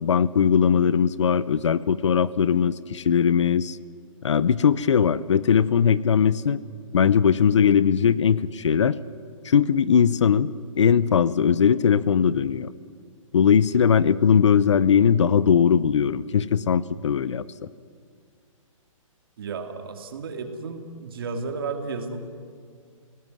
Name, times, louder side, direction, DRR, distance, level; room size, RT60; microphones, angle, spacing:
voice 1, 0.0-3.8 4.2-6.6 6.9-9.0 9.4-12.7 13.3-17.4, left 7 dB, 60° left, 18 dB, 0.7 m, -20 dB
voice 2, 19.4-22.2, right 4 dB, 40° right, 6 dB, 2.4 m, -33 dB
27.5 x 18.0 x 9.5 m, 2.1 s
hypercardioid pair, 175°, 18 cm